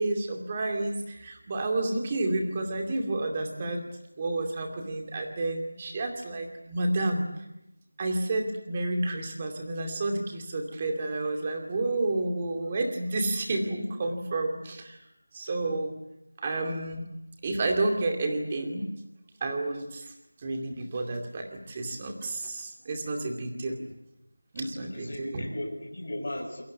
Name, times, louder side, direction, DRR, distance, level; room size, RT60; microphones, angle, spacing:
voice 1, 0.0-3.9 4.2-7.2 8.0-15.0 15.3-16.0 16.4-17.0 17.4-18.9 19.4-20.1 20.4-23.8 24.5-25.5, right 2 dB, 15° right, 3 dB, 2.4 m, -30 dB
voice 2, 24.8-26.6, left 1 dB, 35° left, -1 dB, 6.9 m, -37 dB
28.0 x 22.0 x 8.5 m, 0.85 s
figure-of-eight pair, 180°, 0 cm